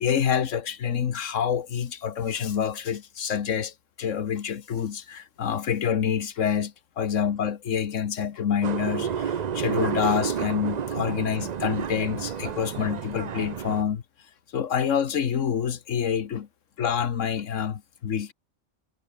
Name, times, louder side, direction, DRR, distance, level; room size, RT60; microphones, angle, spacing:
voice 1, 0.0-14.0 14.5-16.5 16.8-18.3, left 8 dB, 75° left, 1.4 m, -27 dB
sound 1, 8.6-13.8, right 8 dB, 45° right, 0.6 m, -30 dB
omnidirectional pair, 1.3 m